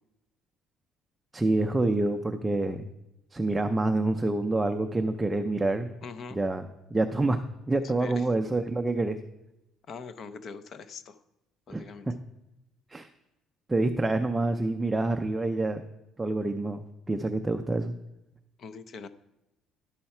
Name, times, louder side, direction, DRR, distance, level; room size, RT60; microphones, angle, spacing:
voice 1, 1.3-2.9 3.3-5.9 6.3-6.6 6.9-7.4 7.7-9.2 11.7-12.1 12.9-13.1 13.7-15.8 16.2-17.9, right 2 dB, 10° right, 6 dB, 0.4 m, -27 dB
voice 2, 6.0-6.4 7.8-8.3 9.9-11.2 11.7-12.1 18.6-19.1, left 5 dB, 45° left, 12 dB, 0.6 m, -42 dB
11.5 x 5.6 x 4.3 m, 0.91 s
cardioid pair, 135°, 0 cm